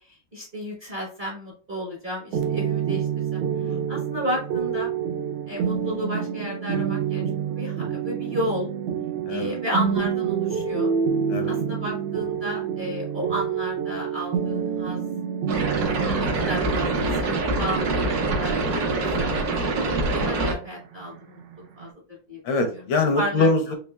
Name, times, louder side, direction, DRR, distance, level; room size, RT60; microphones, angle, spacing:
voice 1, 0.1-3.4 3.9-4.9 5.5-8.7 9.3-10.9 11.5-15.0 15.9-19.3 19.9-21.4 21.8-21.9 22.3-22.4 23.2-23.5, equal, 35° right, -4 dB, 0.9 m, -32 dB
sound 1, 2.3-21.9, right 7 dB, 85° right, 1.5 m, -28 dB
voice 2, 9.3-9.6 11.3-11.5 15.6-15.9 17.8-17.9 19.6-19.9 22.4-23.8, left 3 dB, 80° left, 6 dB, 1.5 m, -24 dB
sound 2, 15.5-20.5, right 2 dB, 60° right, 1.1 m, -25 dB
4.1 x 3.0 x 2.2 m, 0.40 s
omnidirectional pair, 2.1 m